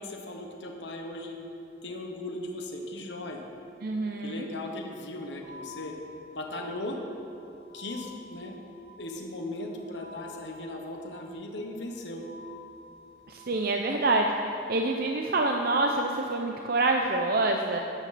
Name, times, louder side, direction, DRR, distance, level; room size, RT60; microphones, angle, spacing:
voice 1, 0.0-1.4 1.8-3.4 4.2-5.9 6.3-7.0 7.7-12.2, left 1 dB, 80° left, 2 dB, 1.2 m, -38 dB
voice 2, 3.8-4.5 13.3-14.3 14.7-17.8, right 2 dB, 60° right, 2 dB, 0.6 m, -26 dB
sound 1, 5.4-14.5, left 4 dB, 15° right, 2.9 m, -51 dB
13.5 x 9.1 x 4.2 m, 3.0 s
head